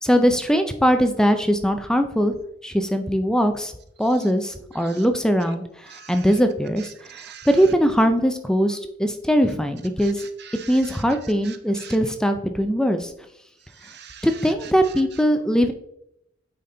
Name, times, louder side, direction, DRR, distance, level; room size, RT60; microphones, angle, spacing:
voice 1, 0.0-2.3 2.6-3.7 4.0-5.6 6.1-6.9 7.5-10.2 10.7-13.1 14.2-15.7, equal, 5° left, 7 dB, 0.4 m, -20 dB
voice 2, 7.1-7.5 10.0-10.7 11.5-11.9 13.8-14.3, right 8 dB, 60° right, 8 dB, 0.8 m, -43 dB
8.7 x 4.2 x 3.8 m, 0.77 s
head